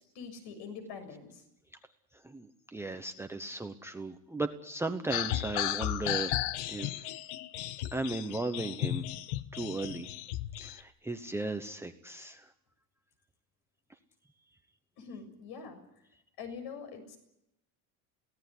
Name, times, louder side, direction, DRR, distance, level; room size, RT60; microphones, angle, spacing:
voice 1, 0.2-1.4 15.0-15.8 16.4-17.2, left 5 dB, 60° left, 7 dB, 6.9 m, -44 dB
voice 2, 2.2-6.3 6.7-7.1 7.9-9.1 9.5-10.1 10.6-12.5, right 2 dB, 5° right, 5 dB, 0.9 m, -36 dB
sound 1, 5.1-10.8, left 14 dB, 75° left, 1.3 m, -34 dB
23.5 x 17.0 x 9.9 m, 0.80 s
cardioid pair, 155°, 43 cm